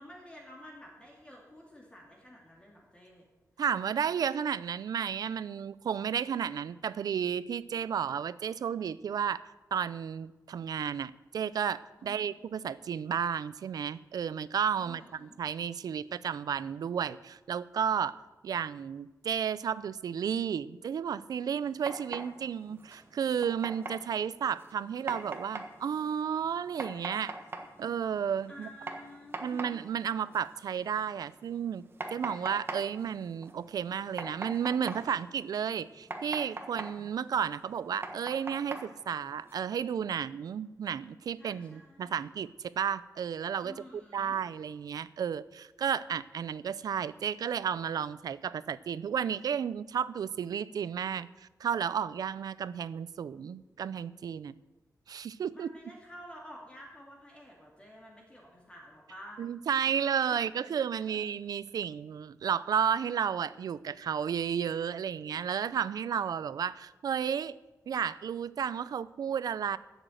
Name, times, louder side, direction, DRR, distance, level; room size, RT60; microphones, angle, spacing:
voice 1, 0.0-3.2 12.0-12.3 14.8-15.4 28.5-29.7 41.4-42.2 43.6-44.4 55.5-59.4 59.9-60.0 60.6-60.7, equal, 15° left, -2 dB, 2.3 m, -51 dB
voice 2, 3.6-9.4 9.7-18.2 18.4-27.3 27.8-28.7 29.4-31.8 32.1-43.7 44.1-54.5 55.1-55.7 59.4-67.5 67.9-69.8, right 8 dB, 85° right, 17 dB, 0.5 m, -32 dB
sound 1, 21.6-39.6, right 3 dB, 35° right, 1.3 m, -44 dB
11.5 x 8.0 x 7.8 m, 1.1 s
wide cardioid pair, 175°, 6 cm